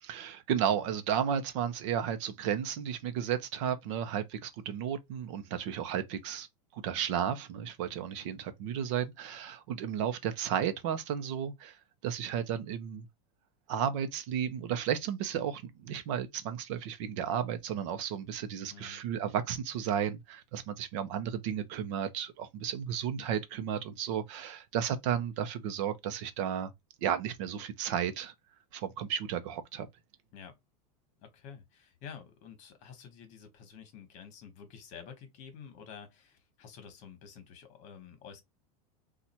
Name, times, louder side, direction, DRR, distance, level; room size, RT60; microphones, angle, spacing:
voice 1, 0.0-6.5 6.7-11.8 12.0-13.1 13.7-26.7 27.0-28.3 28.7-29.9, right 9 dB, 55° right, 0.8 m, -33 dB
voice 2, 18.7-19.0 30.3-30.5 31.2-38.4, left 7 dB, 40° left, 1.3 m, -50 dB
4.2 x 2.5 x 4.3 m
supercardioid pair, 165°, 19 cm